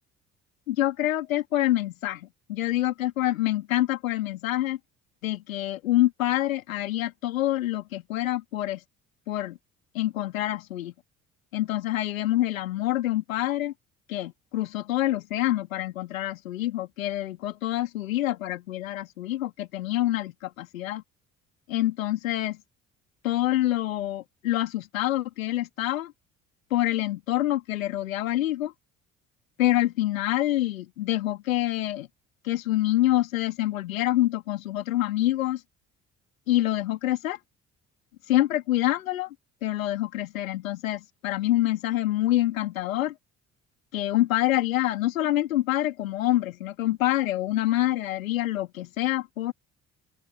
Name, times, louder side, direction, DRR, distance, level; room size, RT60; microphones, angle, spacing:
voice 1, 0.7-4.8 5.2-8.8 9.3-9.6 9.9-10.9 11.5-13.7 14.1-21.0 21.7-22.6 23.2-26.1 26.7-28.7 29.6-32.1 32.4-35.6 36.5-37.4 38.3-39.3 39.6-43.1 43.9-49.5, left 15 dB, 75° left, 3.6 m, -26 dB
open air
figure-of-eight pair, 50°, 41 cm